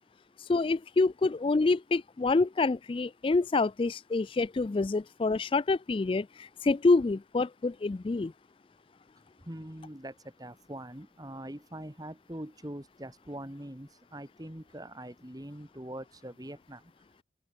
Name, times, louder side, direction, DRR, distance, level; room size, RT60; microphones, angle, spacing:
voice 1, 0.5-8.3, left 3 dB, 30° left, 0.3 m, -27 dB
voice 2, 9.4-16.8, right 1 dB, 20° right, 2.3 m, -43 dB
open air
head